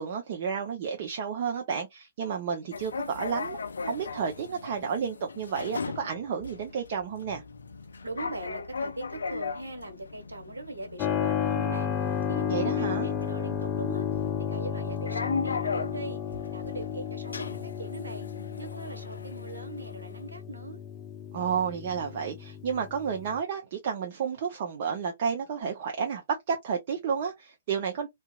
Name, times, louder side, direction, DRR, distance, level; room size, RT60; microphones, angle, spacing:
voice 1, 0.0-3.6 3.8-7.4 12.5-13.1 21.3-28.1, right 6 dB, 45° right, 0.5 m, -31 dB
sound 1, 2.7-20.2, left 4 dB, 75° left, 0.3 m, -38 dB
voice 2, 8.0-11.9 12.3-14.1 14.5-16.2 16.5-18.3 18.6-20.8, right 2 dB, 80° right, 1.1 m, -40 dB
Keyboard (musical), 11.0-23.4, left 8 dB, 25° left, 0.5 m, -32 dB
2.7 x 2.3 x 2.2 m
figure-of-eight pair, 120°, 0 cm